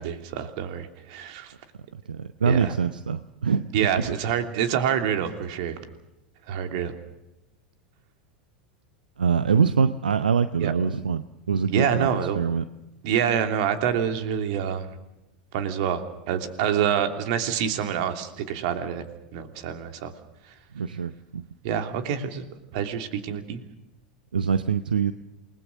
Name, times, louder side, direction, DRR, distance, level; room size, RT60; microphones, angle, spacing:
voice 1, 0.0-1.5 2.5-2.7 3.7-5.8 6.5-6.9 10.6-10.7 11.7-12.4 13.0-14.9 15.5-19.0 19.3-20.1 21.6-22.4 22.7-23.6, right 8 dB, 55° right, 7 dB, 3.0 m, -27 dB
voice 2, 1.9-4.1 9.2-12.1 12.3-12.6 20.7-21.4 24.3-25.1, right 6 dB, 80° right, 12 dB, 0.8 m, -24 dB
28.5 x 20.5 x 6.4 m, 0.93 s
figure-of-eight pair, 85°, 5 cm